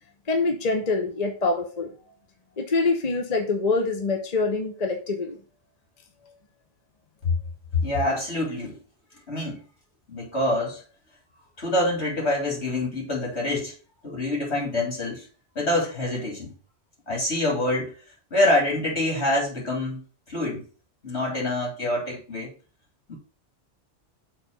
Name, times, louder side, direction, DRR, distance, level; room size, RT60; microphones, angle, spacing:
voice 1, 0.3-1.9 2.6-5.4, left 3 dB, 40° left, 4 dB, 1.0 m, -25 dB
voice 2, 7.7-8.8 9.3-9.6 10.1-10.8 11.6-13.7 14.0-15.3 15.6-16.5 17.1-18.0 18.3-20.6 21.0-22.5 23.1-23.2, left 1 dB, 75° left, -2 dB, 3.7 m, -26 dB
6.7 x 4.0 x 6.0 m, 0.37 s
omnidirectional pair, 1.1 m